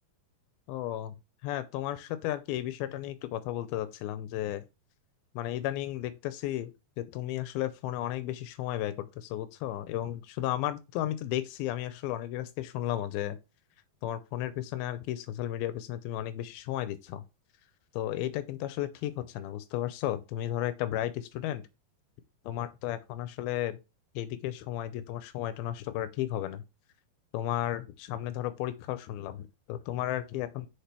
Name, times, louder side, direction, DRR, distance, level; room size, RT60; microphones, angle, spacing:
voice 1, 0.7-1.1 1.4-4.6 5.4-6.7 7.0-13.4 14.0-17.2 17.9-21.6 22.5-23.8 24.2-26.6 27.3-30.7, left 13 dB, 90° left, 2.5 m, -34 dB
6.7 x 5.6 x 4.4 m
omnidirectional pair, 4.3 m